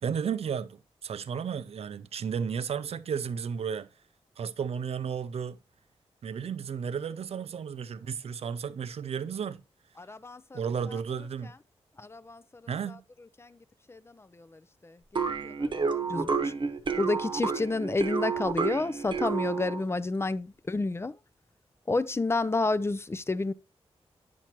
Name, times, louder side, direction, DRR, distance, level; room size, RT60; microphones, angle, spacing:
voice 1, 0.0-3.9 4.4-5.6 6.2-9.6 10.5-11.5 12.7-13.0, right 7 dB, 70° right, 0.5 m, -33 dB
voice 2, 10.0-10.6 12.0-12.4 13.4-13.6 13.9-15.0 15.4-16.5 17.0-21.1 21.9-23.5, left 3 dB, 25° left, 0.4 m, -30 dB
sound 1, 15.2-19.9, right 5 dB, 45° right, 0.9 m, -30 dB
9.2 x 6.0 x 2.9 m
cardioid pair, 75°, 11 cm